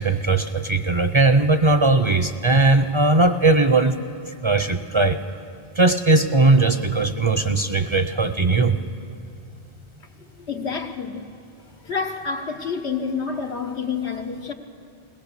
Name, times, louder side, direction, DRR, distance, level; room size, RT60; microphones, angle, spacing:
voice 1, 0.0-4.0 4.4-5.2 5.8-8.8, right 3 dB, 35° right, 8 dB, 0.6 m, -18 dB
voice 2, 10.2-11.3 11.8-14.5, left 5 dB, 90° left, 3 dB, 1.6 m, -28 dB
21.5 x 17.5 x 6.8 m, 2.7 s
omnidirectional pair, 1.1 m